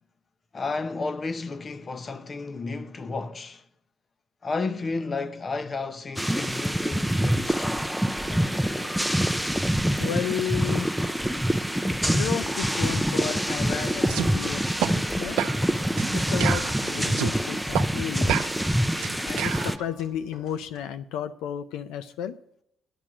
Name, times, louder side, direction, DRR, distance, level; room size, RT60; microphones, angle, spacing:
voice 1, 0.5-3.6 4.4-7.9, left 3 dB, 40° left, 0.7 m, -32 dB
sound 1, 6.2-19.8, equal, ahead, 0.6 m, -26 dB
sound 2, 7.9-20.8, left 3 dB, 70° left, 3.2 m, -46 dB
voice 2, 10.0-11.0 12.1-15.4 16.1-18.4 19.3-22.4, left 9 dB, 85° left, 0.4 m, -33 dB
sound 3, 14.1-14.3 14.8-14.9 15.4-15.6 16.0-16.1 16.4-17.3 17.7-17.9 18.3-19.7, right 11 dB, 85° right, 0.5 m, -28 dB
9.9 x 6.0 x 8.7 m
supercardioid pair, 65°, 0 cm